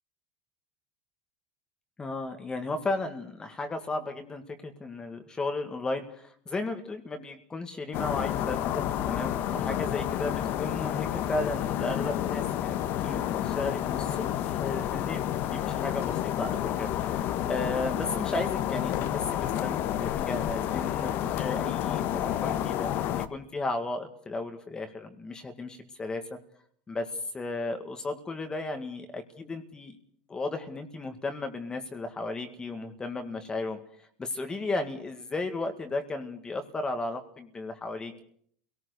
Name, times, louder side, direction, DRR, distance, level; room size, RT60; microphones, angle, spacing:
voice 1, 2.0-26.4 26.9-30.0 30.3-33.8 34.2-38.2, left 2 dB, 15° left, 6 dB, 1.9 m, -35 dB
sound 1, 7.9-23.3, left 11 dB, 50° left, 1.3 m, -30 dB
27.0 x 18.5 x 6.7 m, 0.63 s
supercardioid pair, 135°, 5 cm